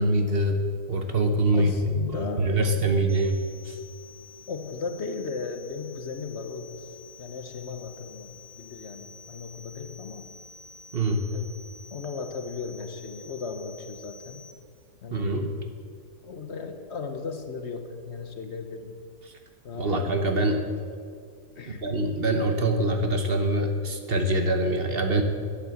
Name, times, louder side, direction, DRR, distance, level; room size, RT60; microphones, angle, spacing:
voice 1, 0.0-1.9 2.4-3.8 10.9-11.3 15.1-15.5 19.8-20.6 21.7-25.2, right 1 dB, 45° right, 5 dB, 1.2 m, -24 dB
voice 2, 1.5-3.1 4.5-6.9 7.2-10.3 11.3-14.4 15.0-15.5 16.2-19.0 19.6-20.6 21.5-21.9, left 4 dB, 55° left, 7 dB, 1.1 m, -36 dB
sound 1, 3.1-14.5, left 5 dB, 15° right, 0.9 m, -49 dB
11.5 x 8.5 x 7.8 m, 2.2 s
omnidirectional pair, 1.4 m